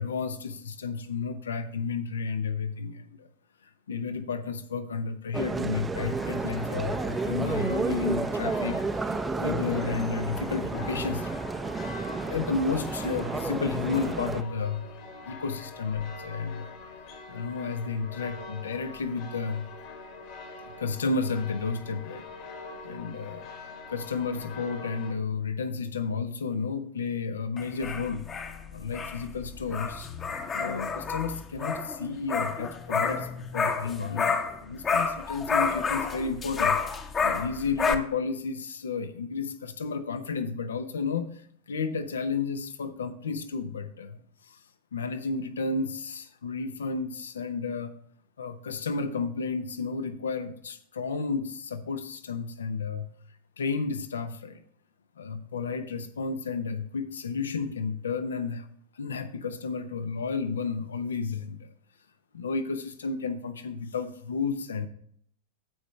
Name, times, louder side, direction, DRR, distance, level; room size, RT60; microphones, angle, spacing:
voice 1, 0.0-3.3 3.9-11.5 12.1-14.9 15.2-16.7 17.3-19.7 20.8-22.2 22.8-23.5 23.9-28.3 28.7-30.1 30.5-36.9 37.2-44.6 44.9-47.9 48.4-53.1 53.6-54.6 55.2-58.7 58.9-61.7 62.3-64.9, left 5 dB, 70° left, 11 dB, 0.9 m, -32 dB
sound 1, 5.3-14.4, right 3 dB, 10° right, 0.6 m, -31 dB
sound 2, 5.9-25.1, left 3 dB, 45° left, 1.8 m, -43 dB
sound 3, 27.6-34.6 34.8-37.9, left 5 dB, 25° left, 1.0 m, -29 dB
15.0 x 5.1 x 3.3 m, 0.64 s
figure-of-eight pair, 90°, 0 cm